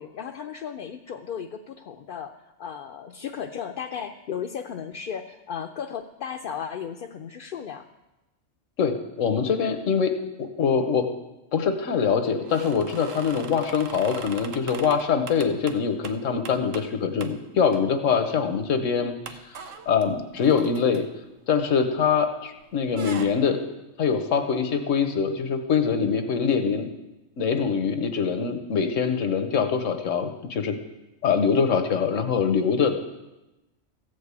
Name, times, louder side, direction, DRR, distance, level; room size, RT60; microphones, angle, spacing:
voice 1, 0.0-7.9, left 7 dB, 55° left, 5 dB, 0.6 m, -35 dB
voice 2, 8.8-10.1 10.4-11.1 11.5-21.1 21.5-23.6 24.0-26.9 27.4-30.7 31.2-32.9, left 6 dB, 85° left, 8 dB, 1.4 m, -24 dB
sound 1, 12.4-16.9 17.2-17.4 17.7-18.2 18.6-18.7 19.2-22.3 22.6-23.3, right 6 dB, 80° right, 1.3 m, -41 dB
14.5 x 5.3 x 8.2 m, 1.0 s
omnidirectional pair, 1.3 m